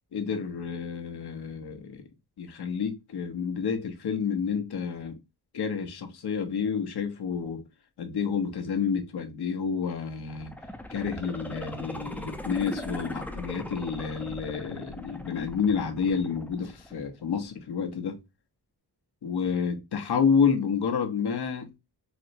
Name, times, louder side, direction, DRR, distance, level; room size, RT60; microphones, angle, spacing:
voice 1, 0.1-2.1 2.4-5.2 5.5-7.6 8.0-10.5 10.9-18.2 19.2-21.7, left 6 dB, 75° left, 0.8 m, -29 dB
sound 1, 10.3-17.2 17.6-17.7, left 1 dB, 5° left, 0.4 m, -39 dB
4.1 x 2.0 x 2.6 m
wide cardioid pair, 120°, 40 cm